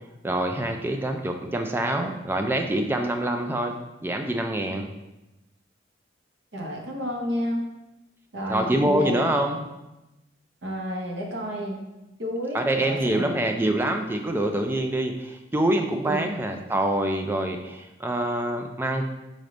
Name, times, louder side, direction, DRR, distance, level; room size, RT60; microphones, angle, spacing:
voice 1, 0.2-3.8 4.0-4.9 8.5-9.6 12.5-19.1, right 1 dB, 10° right, 4 dB, 0.3 m, -25 dB
voice 2, 6.5-7.6 8.3-9.2 10.6-11.8 12.2-13.3 16.0-16.3, equal, 70° right, 0 dB, 0.9 m, -30 dB
4.0 x 3.4 x 3.7 m, 0.98 s
head